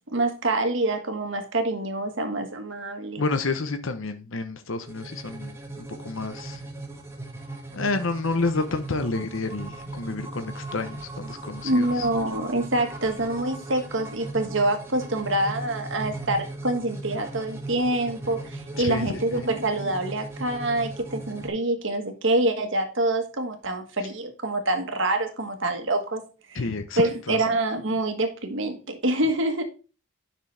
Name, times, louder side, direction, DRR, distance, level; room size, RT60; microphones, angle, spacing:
voice 1, 0.1-3.2 11.6-26.2 26.5-26.7 27.0-29.6, right 2 dB, 60° right, 1.5 m, -26 dB
voice 2, 3.2-6.6 7.7-12.1 18.8-19.4 26.5-27.4, left 3 dB, 70° left, 0.9 m, -29 dB
sound 1, 4.8-21.5, right 2 dB, 10° right, 1.3 m, -38 dB
9.6 x 6.0 x 3.4 m
head